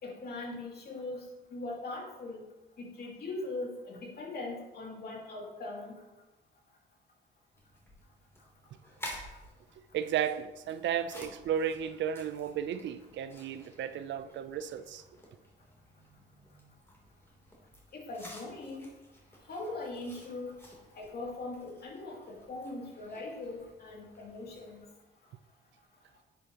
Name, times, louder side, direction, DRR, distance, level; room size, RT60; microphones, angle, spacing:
voice 1, 0.0-2.4 2.8-5.9 17.9-18.9 19.4-20.5 20.9-24.9, left 2 dB, 50° left, 2.5 m, -40 dB
sound 1, 7.5-24.8, equal, 10° left, 3.0 m, -52 dB
voice 2, 9.9-15.0, right 9 dB, 65° right, 0.5 m, -34 dB
10.5 x 7.0 x 2.9 m
cardioid pair, 90°, 20 cm